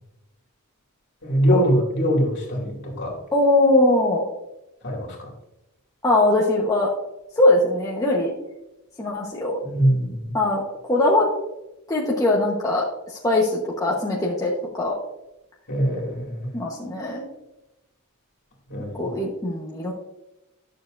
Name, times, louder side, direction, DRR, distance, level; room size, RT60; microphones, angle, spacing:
voice 1, 1.2-3.2 4.8-5.3 9.6-10.3 15.7-16.5 18.7-19.1, equal, 50° left, -2 dB, 2.6 m, -23 dB
voice 2, 3.3-4.2 6.0-6.9 7.4-8.3 9.0-9.6 10.3-10.6 10.9-11.3 11.9-14.5 14.8-14.9 16.5-17.2 19.0-19.9, left 2 dB, 15° left, -4 dB, 1.1 m, -21 dB
11.5 x 6.8 x 2.6 m, 0.94 s
head